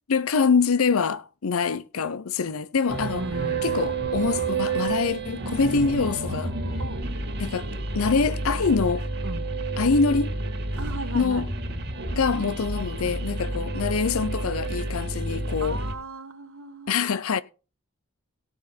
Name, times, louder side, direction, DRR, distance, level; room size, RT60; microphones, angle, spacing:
voice 1, 0.1-3.3 3.6-6.5 7.4-9.1 9.8-10.3 11.1-11.5 12.1-15.8 16.9-17.4, left 5 dB, 70° left, 0.6 m, -25 dB
sound 1, 2.9-15.9, right 3 dB, 50° right, 2.5 m, -30 dB
voice 2, 3.1-3.6 6.8-7.0 9.2-9.5 10.8-11.4 15.6-16.9, right 2 dB, 70° right, 1.9 m, -36 dB
17.5 x 6.3 x 4.1 m
head